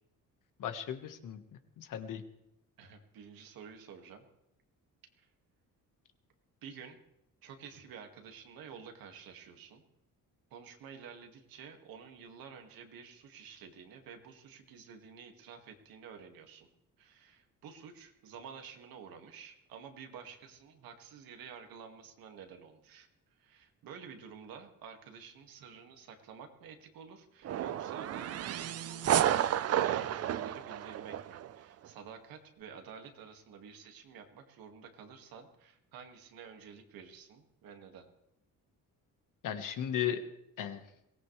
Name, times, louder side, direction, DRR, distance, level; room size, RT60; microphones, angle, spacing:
voice 1, 0.6-1.4 1.8-2.2 39.4-40.2 40.6-40.8, left 9 dB, 65° left, 8 dB, 1.6 m, -35 dB
voice 2, 2.8-4.3 5.2-5.3 6.6-7.0 7.4-9.8 10.5-16.7 17.0-23.1 23.4-38.1, right 6 dB, 85° right, 4 dB, 2.2 m, -50 dB
sound 1, 27.4-31.5, right 11 dB, 45° right, 0.5 m, -31 dB
22.5 x 18.0 x 3.3 m, 0.84 s
cardioid pair, 150°, 34 cm